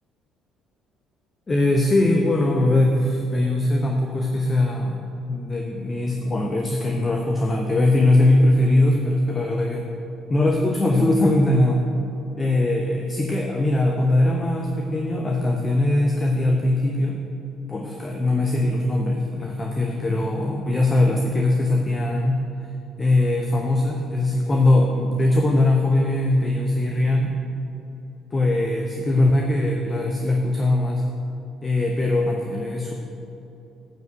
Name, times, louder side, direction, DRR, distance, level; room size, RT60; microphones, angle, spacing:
voice 1, 1.5-9.9 10.3-11.9 12.4-17.2 17.7-22.4 23.0-27.3 28.3-31.0 31.6-32.9, left 1 dB, 30° left, 1 dB, 0.9 m, -21 dB
9.3 x 5.0 x 7.8 m, 2.9 s
figure-of-eight pair, 50°, 0 cm